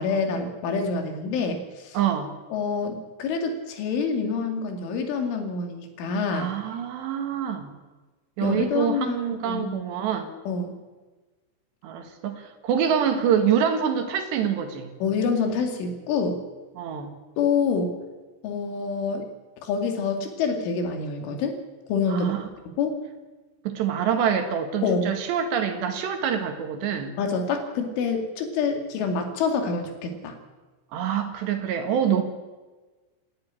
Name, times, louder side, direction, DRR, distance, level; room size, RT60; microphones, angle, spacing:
voice 1, 0.0-2.0 2.5-6.5 8.4-9.8 10.5-10.8 15.0-16.4 17.4-18.0 18.4-19.3 19.6-21.6 21.9-22.3 22.8-22.9 24.8-25.1 27.2-30.3, left 5 dB, 70° left, 5 dB, 4.7 m, -26 dB
voice 2, 1.9-2.4 6.3-7.7 8.4-10.3 11.8-14.9 16.8-17.1 22.1-22.5 23.6-27.2 30.9-32.2, right 8 dB, 65° right, 7 dB, 3.4 m, -26 dB
27.5 x 11.5 x 9.9 m, 1.3 s
omnidirectional pair, 6.0 m